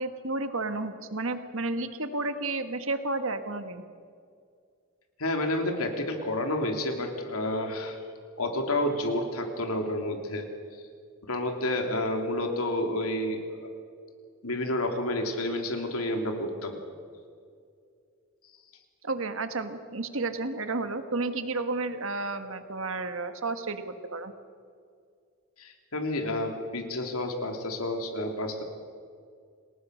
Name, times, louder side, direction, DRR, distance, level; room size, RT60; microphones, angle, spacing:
voice 1, 0.0-3.8 19.0-24.3, right 3 dB, 65° right, 9 dB, 1.7 m, -32 dB
voice 2, 5.2-8.0 8.4-10.5 11.2-13.6 14.4-16.8 25.6-28.6, left 1 dB, 85° left, 4 dB, 3.4 m, -30 dB
29.5 x 19.5 x 6.6 m, 2.2 s
head